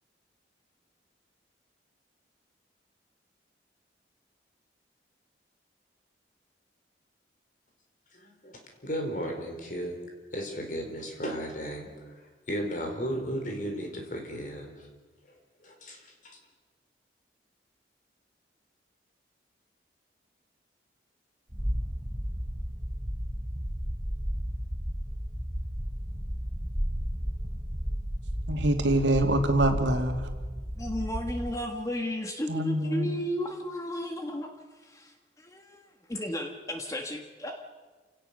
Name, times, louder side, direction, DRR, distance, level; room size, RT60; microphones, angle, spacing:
voice 1, 8.1-10.0 10.3-12.1 12.5-14.7 15.6-16.4, equal, 45° left, 3 dB, 4.3 m, -35 dB
sound 1, 21.5-31.5, equal, 15° right, 1.2 m, -33 dB
voice 2, 28.5-30.2 32.5-33.2, right 1 dB, 90° right, 5 dB, 2.5 m, -25 dB
voice 3, 30.7-34.5 34.8-37.6, equal, 20° left, 4 dB, 1.5 m, -34 dB
28.0 x 18.0 x 6.7 m, 1.4 s
head